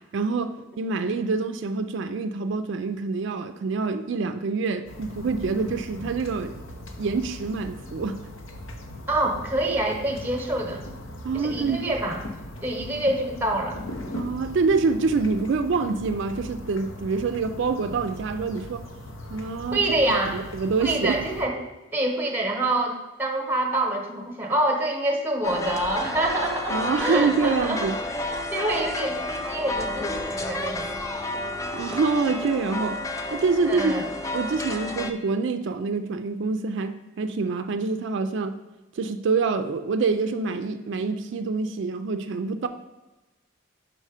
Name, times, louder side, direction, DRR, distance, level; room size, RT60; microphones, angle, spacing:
voice 1, 0.1-6.6 7.0-8.2 11.2-11.9 14.2-18.8 19.3-19.8 20.3-21.2 26.7-28.0 31.7-33.0 33.3-34.1 34.3-38.5 38.9-42.7, right 4 dB, 65° right, 8 dB, 0.4 m, -26 dB
sound 1, 4.9-21.5, left 1 dB, 80° left, 0.9 m, -39 dB
voice 2, 9.1-10.8 11.3-12.2 12.6-13.8 19.7-20.4 20.8-21.5 21.9-27.9 28.2-31.0 33.6-34.1, right 1 dB, 10° right, 2 dB, 0.9 m, -26 dB
sound 2, 25.4-35.1, left 2 dB, 15° left, 0.4 m, -31 dB
5.5 x 5.3 x 4.9 m, 1.1 s
head